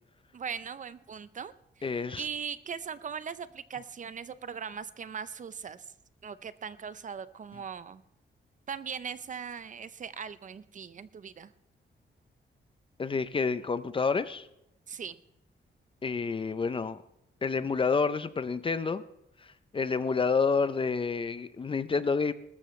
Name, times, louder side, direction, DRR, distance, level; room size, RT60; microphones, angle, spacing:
voice 1, 0.3-5.9 6.2-8.0 8.7-11.5 14.9-15.1, right 7 dB, 40° right, 15 dB, 0.5 m, -40 dB
voice 2, 1.8-2.3 13.0-14.5 16.0-17.0 17.4-19.0 19.4-22.3, left 5 dB, 30° left, 13 dB, 0.5 m, -29 dB
20.0 x 13.5 x 3.2 m, 0.84 s
wide cardioid pair, 170°, 19 cm